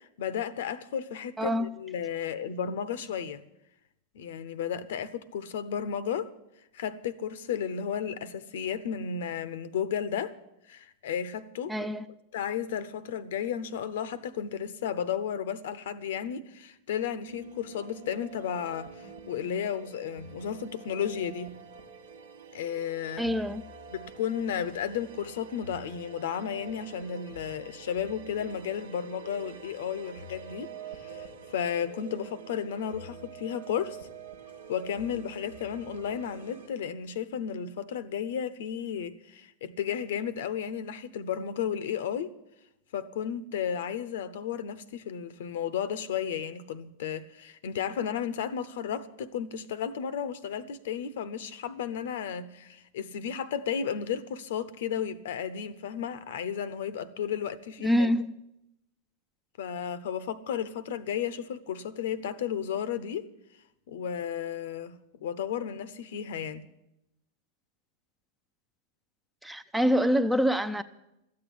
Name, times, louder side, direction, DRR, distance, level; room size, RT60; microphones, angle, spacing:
voice 1, 0.0-3.4 4.1-6.3 6.7-10.3 10.7-11.9 12.3-21.6 22.5-23.3 23.9-30.7 31.0-34.0 34.7-42.3 42.9-58.1 59.6-63.3 63.9-66.7, left 8 dB, 55° left, 0.8 m, -33 dB
voice 2, 1.4-1.7 11.7-12.0 23.2-23.6 57.8-58.3 69.4-70.8, equal, 5° right, 0.5 m, -25 dB
sound 1, 17.3-36.7, right 4 dB, 65° right, 1.2 m, -47 dB
13.5 x 8.6 x 10.0 m
figure-of-eight pair, 90°, 0 cm